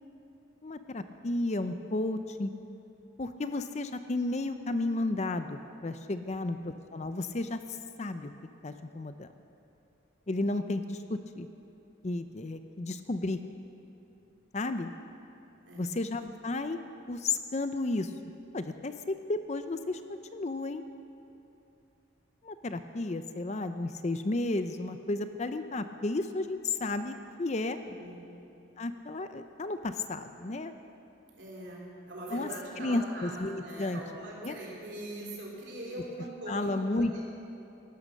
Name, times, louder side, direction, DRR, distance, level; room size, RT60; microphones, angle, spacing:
voice 1, 0.6-2.5 3.2-8.3 8.6-9.3 10.3-11.5 12.0-13.4 14.5-14.9 15.8-16.8 17.1-18.1 18.5-20.8 22.4-27.8 28.8-30.7 32.3-32.5 32.8-34.0 34.4-34.6 36.5-37.2, left 2 dB, 35° left, 9 dB, 0.5 m, -33 dB
voice 2, 15.6-16.0 27.8-28.3 31.4-37.2, right 1 dB, 60° right, -3 dB, 3.8 m, -42 dB
17.0 x 11.5 x 6.6 m, 2.7 s
head